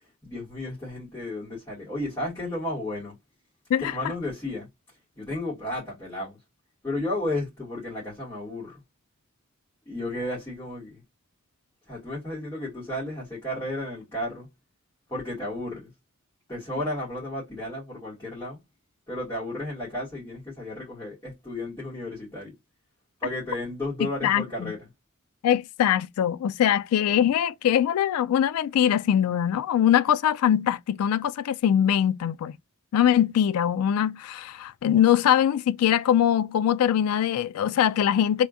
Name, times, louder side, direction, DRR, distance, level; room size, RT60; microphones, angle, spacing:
voice 1, 0.2-3.1 3.8-4.7 5.2-6.4 6.8-8.8 9.9-11.0 11.9-14.5 15.1-15.9 16.5-18.6 19.1-22.5 23.2-24.8, left 1 dB, 15° left, 2.4 m, -33 dB
voice 2, 24.0-24.7 25.4-32.5 32.9-38.5, left 10 dB, 80° left, 0.3 m, -22 dB
3.5 x 3.4 x 2.6 m
head